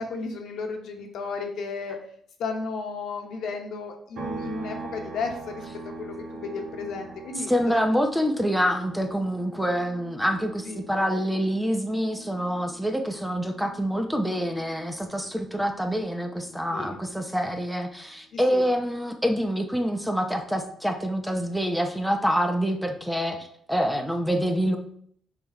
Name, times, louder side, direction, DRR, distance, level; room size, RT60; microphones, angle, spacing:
voice 1, 0.0-2.0 2.4-7.5 10.7-10.8 16.7-17.0 18.3-18.6, left 4 dB, 75° left, 3 dB, 1.1 m, -34 dB
sound 1, 4.2-17.7 18.0-20.3, right 3 dB, 80° right, 1.7 m, -44 dB
voice 2, 7.5-24.8, equal, ahead, 4 dB, 0.8 m, -26 dB
6.0 x 3.5 x 4.4 m, 0.62 s
cardioid pair, 90°, 0 cm